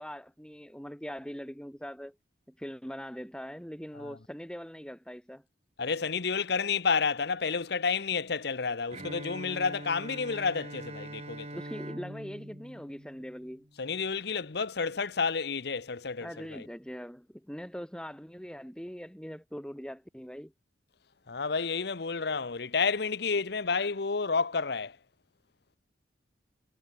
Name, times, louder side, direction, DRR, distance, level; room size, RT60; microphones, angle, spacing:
voice 1, 0.0-2.1 2.6-5.4 11.5-13.7 16.2-20.5, equal, 5° left, 1.8 m, -42 dB
voice 2, 5.8-11.5 13.8-16.7 21.3-25.0, left 5 dB, 60° left, 0.8 m, -30 dB
Bowed string instrument, 8.9-13.8, right 1 dB, 35° right, 5.1 m, -43 dB
head